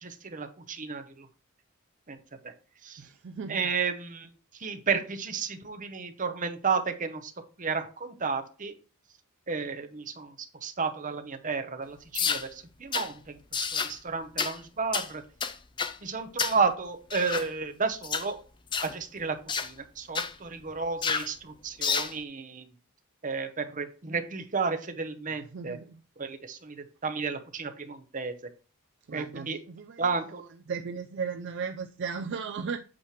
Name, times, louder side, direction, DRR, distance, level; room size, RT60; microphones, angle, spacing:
voice 1, 0.0-1.3 2.1-2.2 2.8-3.0 3.5-4.3 4.6-7.3 7.6-8.7 9.5-10.3 10.6-15.2 16.0-18.4 18.8-22.7 23.2-25.8 26.2-28.3 29.1-29.6 30.0-30.4, right 5 dB, 35° right, 0.8 m, -32 dB
voice 2, 3.0-3.7 25.5-26.0 29.1-30.0 30.7-32.8, right 5 dB, 55° right, 0.4 m, -36 dB
sound 1, 12.1-12.5 12.9-13.1 13.5-13.9 14.4-14.6 14.9-15.1 15.4-16.0 16.4-16.6 17.1-17.5 18.0-18.3 18.7-18.9 19.5-19.7 20.1-20.3 21.0-21.3 21.8-22.1, left 6 dB, 20° left, 0.4 m, -29 dB
8.6 x 3.2 x 5.8 m
head